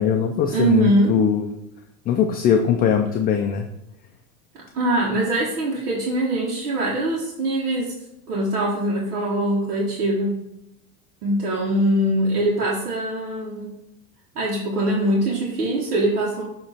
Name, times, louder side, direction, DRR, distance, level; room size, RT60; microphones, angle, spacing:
voice 1, 0.0-1.5 2.1-3.7, left 8 dB, 25° left, 4 dB, 0.3 m, -20 dB
voice 2, 0.5-1.1 4.7-7.9 8.3-10.3 11.2-13.7 14.3-16.4, right 1 dB, 85° right, -5 dB, 1.5 m, -22 dB
7.0 x 3.1 x 4.3 m, 0.86 s
supercardioid pair, 110°, 44 cm